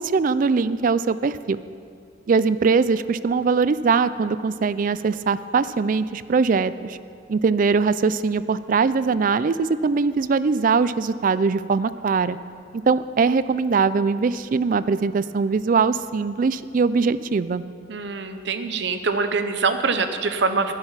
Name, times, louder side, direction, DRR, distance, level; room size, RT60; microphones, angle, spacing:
voice 1, 0.0-1.6 2.3-7.0 7.3-12.4 12.7-17.6, right 5 dB, 45° right, 15 dB, 0.3 m, -21 dB
voice 2, 17.9-20.7, right 4 dB, 60° right, 8 dB, 0.7 m, -24 dB
10.5 x 10.5 x 5.7 m, 2.3 s
head